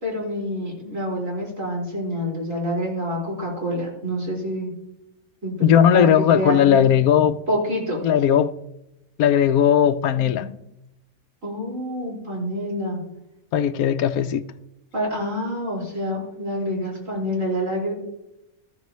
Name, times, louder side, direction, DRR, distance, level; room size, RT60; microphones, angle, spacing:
voice 1, 0.0-4.7 5.4-6.8 7.5-8.0 10.2-10.5 11.4-13.0 14.9-17.9, equal, 60° right, 5.2 m, -27 dB
voice 2, 5.6-7.4 8.0-8.5 9.2-10.5 13.5-14.4, left 9 dB, 80° left, 1.1 m, -17 dB
14.0 x 13.0 x 3.1 m
omnidirectional pair, 1.5 m